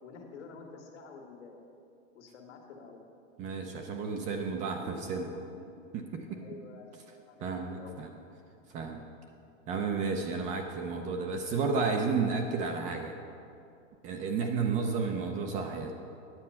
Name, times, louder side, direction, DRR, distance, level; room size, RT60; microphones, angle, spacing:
voice 1, 0.0-1.8 2.1-3.0 4.7-5.2 5.5-5.8 6.4-6.9 7.3-8.2, left 4 dB, 70° left, 2 dB, 1.8 m, -49 dB
voice 2, 3.4-5.3 5.9-6.4 7.4-8.1 8.7-9.0 9.7-13.1 14.0-15.9, right 4 dB, 20° right, 3 dB, 0.4 m, -32 dB
9.9 x 7.5 x 5.6 m, 2.5 s
hypercardioid pair, 145°, 37 cm